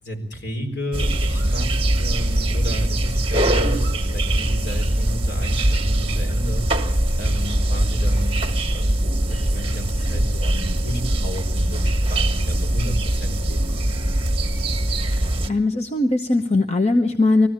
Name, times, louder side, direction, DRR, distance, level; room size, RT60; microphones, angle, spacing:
voice 1, 0.0-6.6 7.2-8.4 8.7-14.0, equal, 65° left, 5 dB, 4.3 m, -32 dB
sound 1, 0.9-15.5, right 1 dB, 30° right, 1.6 m, -22 dB
voice 2, 15.5-17.5, left 2 dB, 35° left, 6 dB, 0.9 m, -19 dB
21.5 x 15.0 x 8.8 m, 0.75 s
head